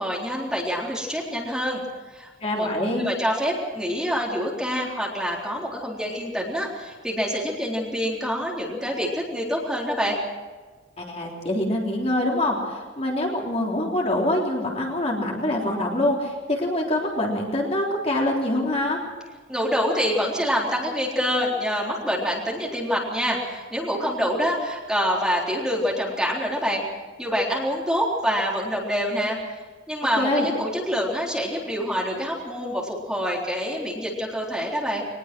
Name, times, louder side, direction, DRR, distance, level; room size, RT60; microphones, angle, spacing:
voice 1, 0.0-1.8 2.1-2.7 3.0-10.2 19.5-26.8 27.2-29.4 29.9-35.0, equal, 5° right, -3 dB, 3.9 m, -26 dB
voice 2, 2.4-3.1 11.0-19.0 30.2-30.5, left 1 dB, 30° left, -2 dB, 3.7 m, -25 dB
22.0 x 20.5 x 6.2 m, 1.4 s
head